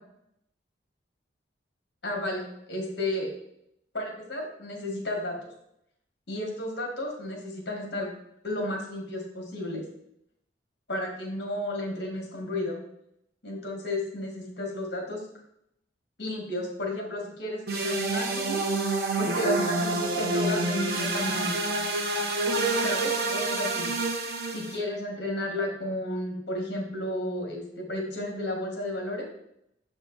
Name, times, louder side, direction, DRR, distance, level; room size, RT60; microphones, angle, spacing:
voice 1, 2.0-3.3 3.9-5.4 6.3-8.1 8.4-9.9 10.9-12.8 13.4-15.2 16.2-18.6 19.2-21.6 22.8-23.9 24.5-29.3, left 1 dB, 60° left, 0 dB, 1.6 m, -32 dB
sound 1, 17.7-24.8, right 2 dB, 55° right, 0.8 m, -28 dB
6.7 x 3.7 x 3.9 m, 0.76 s
head